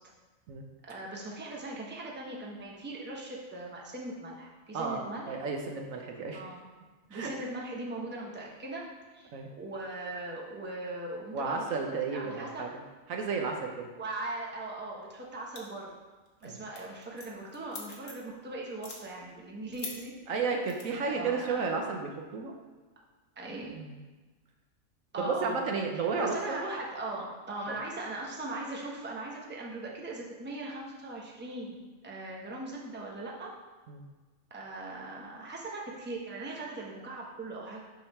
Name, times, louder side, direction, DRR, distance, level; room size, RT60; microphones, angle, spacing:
voice 1, 0.9-5.4 6.3-6.7 7.1-8.8 9.1-9.3 9.6-12.7 14.0-15.9 16.4-20.1 21.0-21.6 23.4-23.7 25.1-25.6 26.2-33.5 34.5-37.8, right 2 dB, 10° right, -3 dB, 0.8 m, -39 dB
voice 2, 4.7-6.4 7.1-7.3 9.3-9.5 11.3-12.7 13.1-13.9 16.4-16.6 20.3-22.5 23.7-23.9 25.2-26.6 27.7-27.8 33.9-34.0, right 4 dB, 70° right, 2 dB, 1.1 m, -32 dB
sound 1, 15.6-15.9 16.3-16.5 16.8-18.3 18.7-19.0 19.7-20.0 20.7-20.8, left 4 dB, 80° left, 1.5 m, -42 dB
6.4 x 3.9 x 5.4 m, 1.3 s
omnidirectional pair, 1.5 m